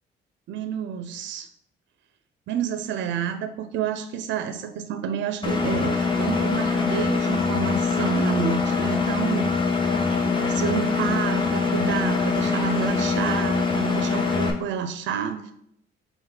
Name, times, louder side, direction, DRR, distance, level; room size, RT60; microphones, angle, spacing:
voice 1, 0.5-1.5 2.5-9.6 10.1-15.5, right 8 dB, 70° right, 9 dB, 0.4 m, -29 dB
Engine, 5.4-14.5, left 4 dB, 25° left, 0.7 m, -23 dB
4.0 x 2.8 x 3.9 m, 0.72 s
cardioid pair, 90°, 20 cm